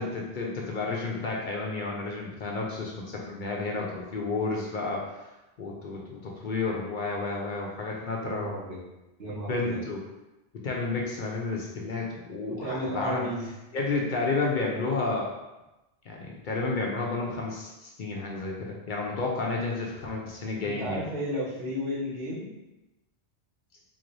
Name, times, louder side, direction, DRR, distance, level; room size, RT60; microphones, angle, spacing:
voice 1, 0.0-5.3 5.6-8.5 9.3-10.0 10.6-13.3 13.7-15.3 16.1-21.0, left 3 dB, 55° left, -2 dB, 0.6 m, -31 dB
voice 2, 8.2-8.8 9.2-9.8 12.5-13.5 20.6-22.5, equal, 85° right, -7 dB, 1.4 m, -33 dB
3.8 x 3.1 x 2.5 m, 1.0 s
omnidirectional pair, 1.2 m